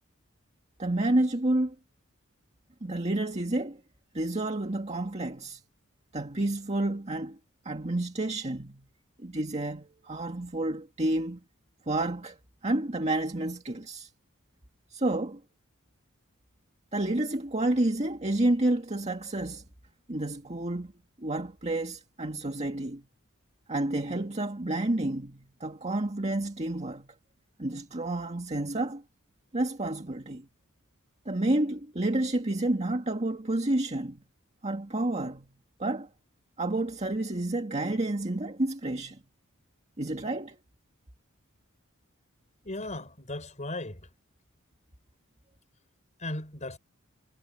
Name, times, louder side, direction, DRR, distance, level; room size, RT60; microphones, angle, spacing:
voice 1, 0.8-1.8 2.8-3.8 4.1-5.6 6.1-7.4 7.7-8.9 9.2-11.4 11.9-12.4 12.6-14.1 14.9-15.4 16.9-19.6 20.1-20.9 21.2-23.0 23.7-27.1 27.6-29.0 29.5-30.5 31.3-34.2 34.6-35.5 35.8-36.1 36.6-39.2 40.0-40.6, right 1 dB, 30° right, 1.9 m, -30 dB
voice 2, 42.6-44.1 46.2-46.8, left 2 dB, 35° left, 4.8 m, -36 dB
head